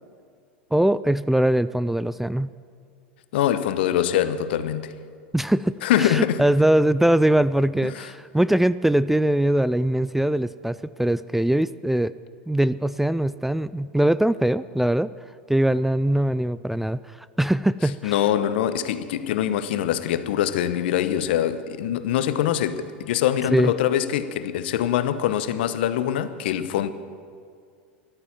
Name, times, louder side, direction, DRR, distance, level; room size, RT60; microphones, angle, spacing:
voice 1, 0.7-2.5 5.3-12.1 12.5-15.1 15.5-18.2 23.5-23.7, right 1 dB, 5° right, 0.3 m, -22 dB
voice 2, 3.3-4.9 5.8-6.4 7.9-8.0 18.0-26.9, left 10 dB, 65° left, 0.9 m, -23 dB
13.5 x 12.0 x 7.2 m
hypercardioid pair, 95°, 6 cm